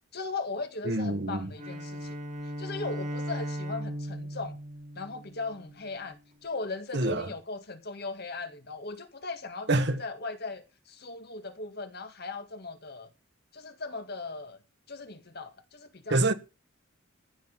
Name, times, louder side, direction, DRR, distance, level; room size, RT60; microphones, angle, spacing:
voice 1, 0.1-2.2 2.6-4.6 4.9-6.2 6.4-13.1 13.5-14.6 14.9-16.2, left 3 dB, 50° left, 1.8 m, -38 dB
voice 2, 0.8-1.5 6.9-7.2 9.7-10.0 16.1-16.3, right 2 dB, 55° right, 1.4 m, -26 dB
Bowed string instrument, 1.5-5.8, equal, 35° right, 4.6 m, -37 dB
15.0 x 6.2 x 8.7 m
head